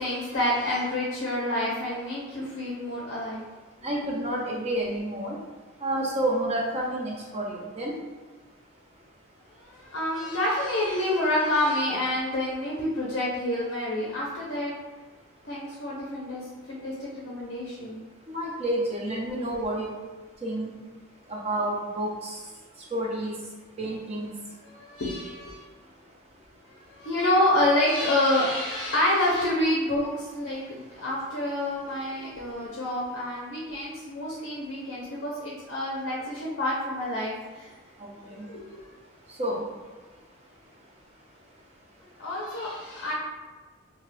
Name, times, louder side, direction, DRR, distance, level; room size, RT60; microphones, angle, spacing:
voice 1, 0.0-3.5 9.6-14.7 15.4-18.0 18.9-19.0 24.6-25.6 26.9-37.7 38.3-38.6 42.2-43.1, left 1 dB, 60° left, -5 dB, 0.5 m, -28 dB
voice 2, 3.8-5.4 5.8-8.0 18.3-19.9 20.4-20.7 21.3-22.4 22.9-23.3 23.8-24.3 32.2-32.3 38.0-38.5 39.4-39.6, right 1 dB, 30° right, -3 dB, 0.5 m, -29 dB
2.7 x 2.3 x 3.2 m, 1.3 s
head